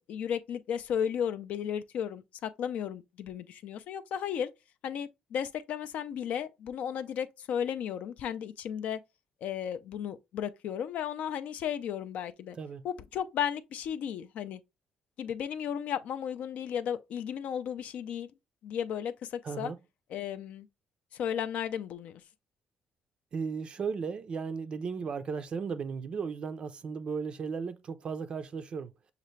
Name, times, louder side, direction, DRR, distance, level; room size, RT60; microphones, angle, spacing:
voice 1, 0.0-4.5 4.8-9.0 9.4-12.6 12.8-14.6 15.2-18.3 18.6-19.7 20.1-20.7 21.1-22.2, left 8 dB, 65° left, 0.4 m, -34 dB
voice 2, 19.4-19.8 23.3-28.9, right 5 dB, 40° right, 0.4 m, -35 dB
6.4 x 2.4 x 3.1 m
cardioid pair, 145°, 3 cm